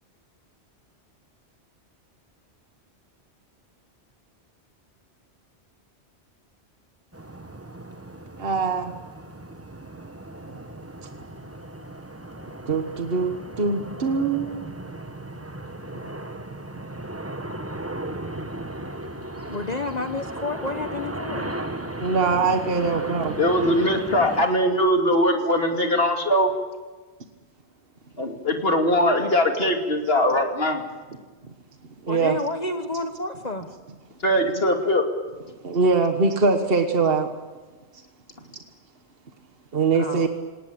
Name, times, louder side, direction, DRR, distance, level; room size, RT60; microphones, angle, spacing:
sound 1, 7.1-24.5, right 1 dB, 15° right, 1.2 m, -36 dB
voice 1, 8.4-8.9 12.7-14.7 22.0-23.4 32.0-32.4 35.6-37.3 39.7-40.3, right 4 dB, 60° right, 6 dB, 1.6 m, -22 dB
voice 2, 19.4-21.6 32.1-33.7 39.9-40.3, left 2 dB, 40° left, 6 dB, 1.3 m, -30 dB
voice 3, 23.4-26.5 28.2-30.8 34.2-35.0, equal, 60° left, 3 dB, 2.9 m, -21 dB
27.5 x 18.0 x 8.8 m, 1.3 s
omnidirectional pair, 1.1 m